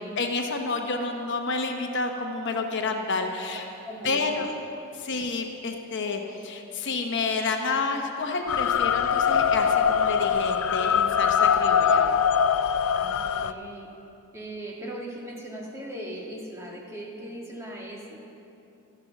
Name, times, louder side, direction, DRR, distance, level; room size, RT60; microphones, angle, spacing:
voice 1, 0.2-3.7 4.0-4.5 4.9-12.0, left 3 dB, 55° left, 3 dB, 1.0 m, -29 dB
voice 2, 3.7-4.5 4.8-5.1 12.9-13.9 14.3-18.2, right 1 dB, 15° right, -3 dB, 1.8 m, -39 dB
sound 1, 8.5-13.5, left 7 dB, 75° left, 0.4 m, -22 dB
13.0 x 11.5 x 7.1 m, 2.8 s
head